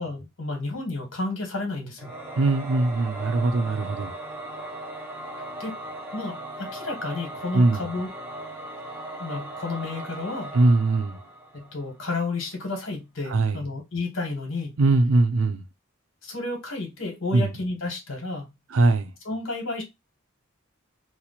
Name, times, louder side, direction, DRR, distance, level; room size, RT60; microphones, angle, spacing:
voice 1, 0.0-2.1 5.6-5.8 6.1-8.1 9.2-10.6 11.5-14.8 16.2-18.5 19.2-19.8, left 3 dB, 70° left, 1.4 m, -31 dB
Singing / Musical instrument, 2.0-12.0, right 1 dB, 10° right, 0.6 m, -38 dB
voice 2, 2.4-4.1 7.5-7.8 10.5-11.2 13.3-13.6 14.8-15.6 17.3-17.5 18.7-19.1, right 2 dB, 70° right, 0.6 m, -21 dB
3.0 x 2.1 x 4.0 m
head